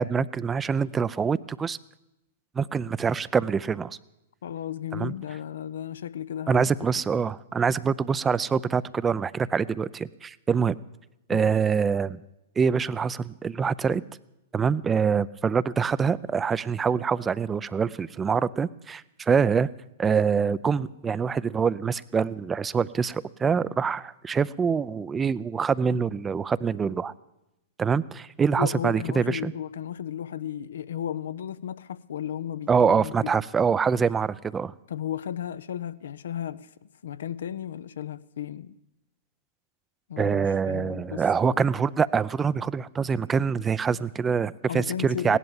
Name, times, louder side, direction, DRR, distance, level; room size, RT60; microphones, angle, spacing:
voice 1, 0.0-1.8 2.6-4.0 4.9-5.1 6.5-10.8 11.3-12.2 12.6-14.0 14.5-19.7 20.0-27.1 27.8-29.5 32.7-34.7 40.2-45.4, right 6 dB, 15° right, 0.5 m, -25 dB
voice 2, 4.4-6.9 11.3-11.5 28.6-33.3 34.9-36.7 37.0-38.8 40.1-41.6 44.7-45.4, left 10 dB, 70° left, 0.6 m, -34 dB
17.0 x 11.0 x 7.2 m
hypercardioid pair, 110°, 0 cm